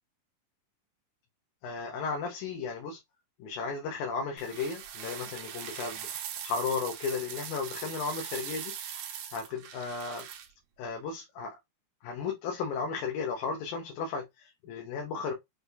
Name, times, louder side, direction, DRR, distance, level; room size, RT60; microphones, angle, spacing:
voice 1, 1.6-3.0 3.4-9.0 9.3-10.3 10.8-11.6 12.0-15.3, left 5 dB, 80° left, 2.2 m, -35 dB
sound 1, 4.4-10.5, right 9 dB, 80° right, 2.1 m, -41 dB
6.3 x 2.3 x 2.6 m
omnidirectional pair, 3.4 m